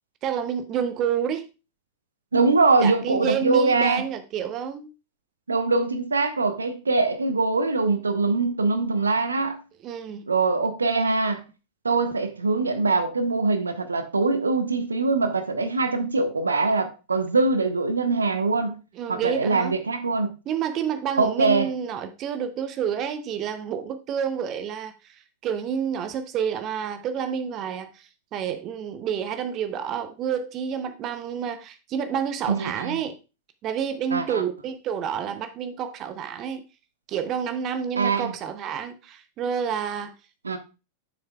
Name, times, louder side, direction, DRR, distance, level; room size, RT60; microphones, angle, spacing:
voice 1, 0.2-1.5 2.8-4.9 9.8-10.3 19.0-19.7 20.5-33.2 33.6-36.6 37.1-40.1, right 8 dB, 35° right, 0.7 m, -29 dB
voice 2, 2.3-4.0 5.5-9.6 10.3-11.4 11.8-18.8 19.1-20.3 21.2-21.7 32.5-33.0 34.1-34.4 38.0-38.3 40.4-40.6, right 3 dB, 75° right, 0.9 m, -23 dB
10.5 x 6.6 x 2.3 m
figure-of-eight pair, 90°, 0 cm